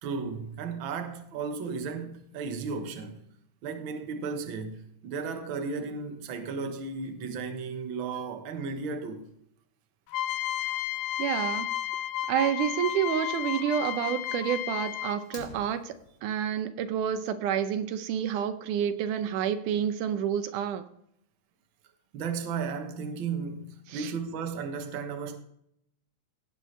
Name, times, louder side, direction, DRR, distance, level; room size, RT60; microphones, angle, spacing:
voice 1, 0.0-3.2 3.6-9.3 22.1-25.4, right 5 dB, 50° right, 1.6 m, -34 dB
sound 1, 10.1-15.4, left 13 dB, 80° left, 1.6 m, -32 dB
voice 2, 11.2-11.7 12.3-15.9 16.2-20.9 23.9-24.1, right 9 dB, 85° right, 2.3 m, -29 dB
Fire, 15.2-16.2, left 3 dB, 50° left, 3.3 m, -47 dB
17.5 x 8.0 x 3.3 m
omnidirectional pair, 3.5 m